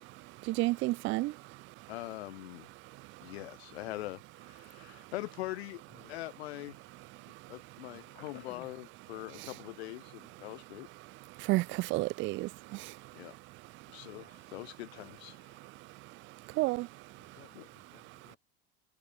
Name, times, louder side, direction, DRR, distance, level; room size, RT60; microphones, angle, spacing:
voice 1, 0.5-1.3 11.5-12.5 16.6-16.9, right 20 dB, 40° right, 0.4 m, -29 dB
voice 2, 1.9-2.7 3.2-5.8 6.1-6.8 7.3-10.9 13.1-13.3 13.9-15.6 17.5-17.7, left 18 dB, 75° left, 1.0 m, -43 dB
voice 3, 8.2-8.7 17.2-18.4, left 9 dB, 35° left, 3.8 m, -56 dB
hypercardioid pair, 90°, 32 cm